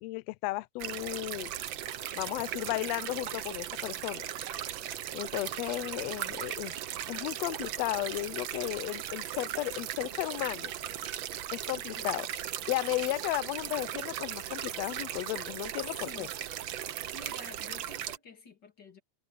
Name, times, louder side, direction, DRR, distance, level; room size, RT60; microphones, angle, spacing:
voice 1, 0.0-1.5 2.1-4.2 5.1-6.7 7.1-10.7 11.5-12.3 12.7-16.3, left 20 dB, 80° left, 1.6 m, -34 dB
sound 1, 0.8-18.2, right 11 dB, 75° right, 1.1 m, -38 dB
voice 2, 17.1-19.0, left 3 dB, 35° left, 3.0 m, -50 dB
omnidirectional pair, 3.3 m